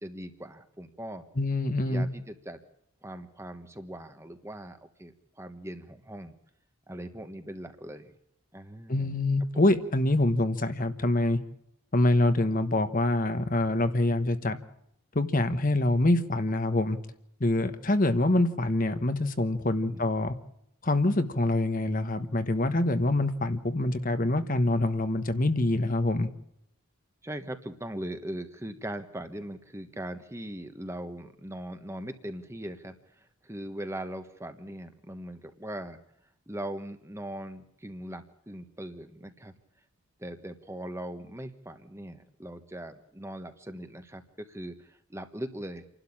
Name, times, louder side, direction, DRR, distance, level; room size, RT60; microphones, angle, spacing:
voice 1, 0.0-1.2 1.9-2.6 3.0-6.3 6.9-8.1 8.5-9.2 19.9-20.1 27.2-36.0 36.5-39.5 40.2-45.8, right 1 dB, 10° right, 8 dB, 1.3 m, -40 dB
voice 2, 1.4-2.1 8.9-11.4 11.9-14.6 15.1-17.0 17.4-20.3 20.8-26.3, left 2 dB, 40° left, 9 dB, 1.1 m, -25 dB
28.0 x 12.0 x 8.7 m, 0.75 s
head